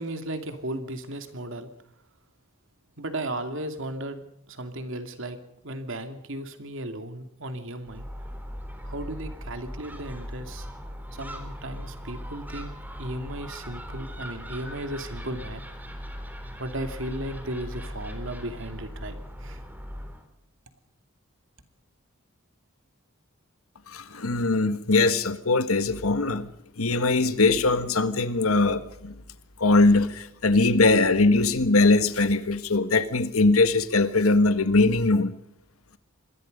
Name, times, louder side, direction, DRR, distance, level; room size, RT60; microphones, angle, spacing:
voice 1, 0.0-1.7 3.0-5.4 5.6-8.1 8.8-10.7 11.1-12.7 13.0-15.6 16.6-19.6, right 1 dB, 65° right, 8 dB, 2.6 m, -35 dB
Gull seagull, 7.8-20.3, equal, 10° right, 3.7 m, -39 dB
voice 2, 23.9-26.5 26.8-29.1 29.6-35.4, left 3 dB, 90° left, 11 dB, 1.5 m, -21 dB
27.0 x 21.5 x 5.3 m, 0.76 s
head